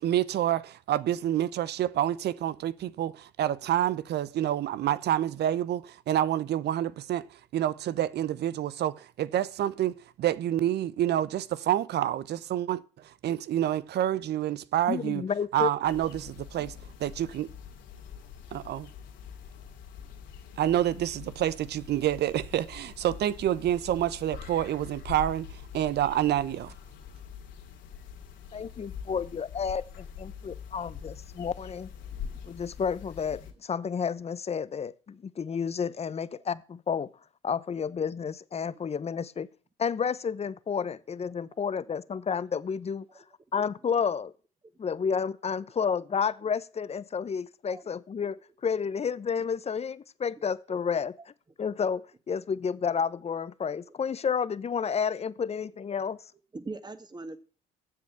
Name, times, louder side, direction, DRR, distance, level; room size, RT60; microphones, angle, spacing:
voice 1, 0.0-7.3 7.5-12.8 13.2-15.2 15.5-17.5 18.5-18.9 20.6-26.7, right 12 dB, 55° right, 0.9 m, -28 dB
voice 2, 14.9-15.7 28.5-31.9 32.4-37.1 37.4-39.5 39.8-43.0 43.5-44.3 44.8-51.1 51.6-56.2, left 6 dB, 30° left, 0.9 m, -31 dB
sound 1, 15.8-33.5, left 7 dB, 70° left, 2.8 m, -44 dB
voice 3, 56.5-57.4, right 3 dB, 20° right, 1.8 m, -42 dB
9.6 x 7.6 x 8.6 m
hypercardioid pair, 65°, 20 cm